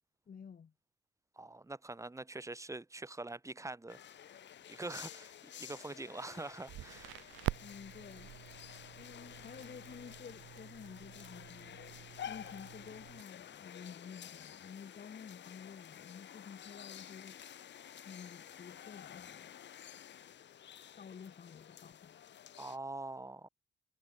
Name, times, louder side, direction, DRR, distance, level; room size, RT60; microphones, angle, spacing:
voice 1, 0.3-0.7 7.6-8.3 8.9-11.8 12.2-17.4 18.0-19.6 20.9-22.6, left 7 dB, 45° left, 6.3 m, -51 dB
voice 2, 1.4-4.0 4.7-7.3 22.6-23.5, right 2 dB, 15° right, 3.3 m, -44 dB
sound 1, 3.9-22.8, left 10 dB, 65° left, 5.3 m, -51 dB
Crackle, 6.7-13.2, right 16 dB, 85° right, 1.4 m, -46 dB
cardioid pair, 90°, 20 cm